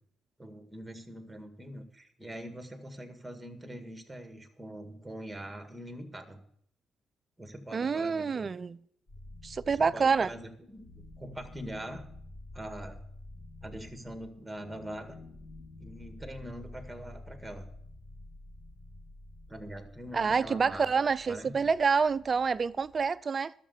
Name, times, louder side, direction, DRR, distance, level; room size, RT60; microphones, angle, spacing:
voice 1, 0.4-6.4 7.4-8.5 9.7-10.8 11.2-12.1 12.5-13.0 13.6-15.2 15.8-17.7 19.5-21.7, right 1 dB, 5° right, 1.9 m, -43 dB
voice 2, 7.7-8.8 9.4-10.3 20.1-23.5, right 5 dB, 40° right, 0.4 m, -27 dB
sound 1, 9.1-23.1, left 2 dB, 45° left, 5.9 m, -50 dB
12.5 x 6.7 x 8.1 m
cardioid pair, 90°, 0 cm